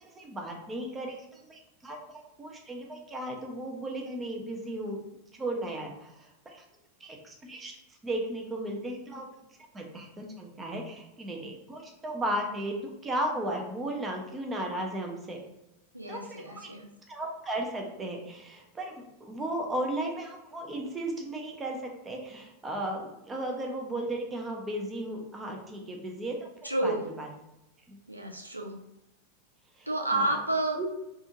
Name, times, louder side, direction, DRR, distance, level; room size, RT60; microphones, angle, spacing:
voice 1, 0.0-2.0 2.4-5.0 5.4-6.6 7.0-7.8 8.0-9.3 9.7-12.8 13.0-15.4 16.1-16.7 17.1-26.4 26.6-27.3 27.9-28.0 29.8-30.4 30.8-30.9, right 1 dB, 15° right, 1 dB, 0.6 m, -35 dB
voice 2, 15.9-16.9 26.6-27.0 28.1-28.8 29.9-30.8, right 2 dB, 85° right, 1 dB, 0.3 m, -30 dB
2.5 x 2.4 x 2.8 m, 0.91 s
figure-of-eight pair, 90°, 0 cm